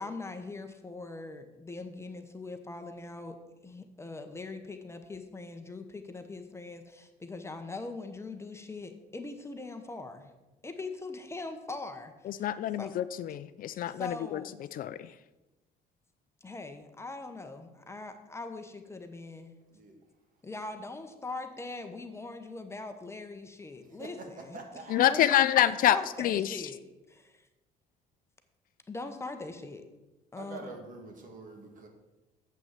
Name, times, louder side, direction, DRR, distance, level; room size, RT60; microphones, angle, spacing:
voice 1, 0.0-3.4 3.6-10.3 10.6-12.5 12.8-12.9 13.9-14.5 16.4-19.5 20.4-24.6 25.0-25.5 25.8-26.8 27.1-27.5 28.9-29.8 30.3-30.8, left 3 dB, 15° left, 7 dB, 1.0 m, -41 dB
voice 2, 12.4-14.4 14.7-15.0 24.9-26.6, left 11 dB, 55° left, 14 dB, 0.4 m, -26 dB
voice 3, 23.9-24.3 24.5-25.1 30.4-31.9, right 3 dB, 50° right, 3 dB, 2.2 m, -45 dB
7.8 x 6.1 x 7.4 m, 1.1 s
cardioid pair, 110°, 17 cm